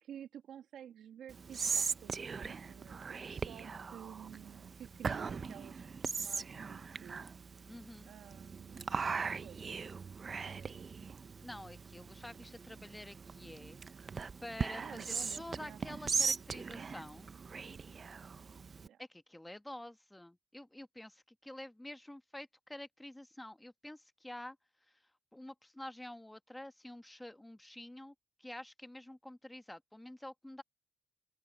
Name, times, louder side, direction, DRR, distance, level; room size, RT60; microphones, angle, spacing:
voice 1, 0.0-5.8 6.2-7.3 8.0-9.6 10.4-11.1 14.8-15.8 18.8-19.0, right 10 dB, 70° right, 1.6 m, -52 dB
Whispering, 1.3-18.9, right 5 dB, 35° right, 0.7 m, -40 dB
voice 2, 7.7-8.1 11.4-13.8 14.4-17.3 19.0-24.6 25.3-28.1 28.4-30.6, left 1 dB, 10° left, 1.2 m, -48 dB
open air
cardioid pair, 100°, 0 cm